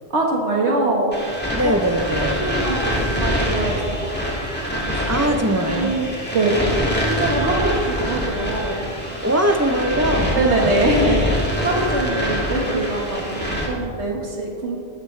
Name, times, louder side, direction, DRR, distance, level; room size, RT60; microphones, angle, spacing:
voice 1, 0.1-1.1 1.6-1.8 2.2-4.3 4.7-6.6 7.0-8.8 10.4-14.8, right 2 dB, 80° right, -1 dB, 2.1 m, -23 dB
sound 1, 1.1-13.7, equal, 10° left, 2.4 m, -25 dB
voice 2, 1.5-2.4 5.1-5.9 9.2-10.7, right 1 dB, 15° right, 6 dB, 0.8 m, -21 dB
19.5 x 13.5 x 3.4 m, 2.3 s
omnidirectional pair, 1.1 m